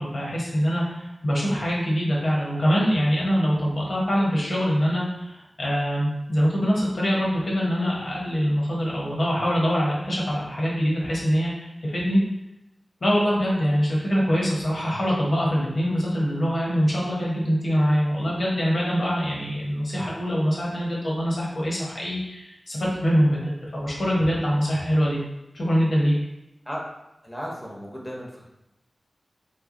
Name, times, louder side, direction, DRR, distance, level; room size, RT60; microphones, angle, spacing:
voice 1, 0.0-12.2 13.0-25.2 25.5-26.1, equal, 70° left, -4 dB, 1.0 m, -24 dB
voice 2, 27.2-28.4, equal, 5° left, -3 dB, 0.8 m, -35 dB
3.2 x 2.2 x 3.7 m, 0.90 s
wide cardioid pair, 85°, 0 cm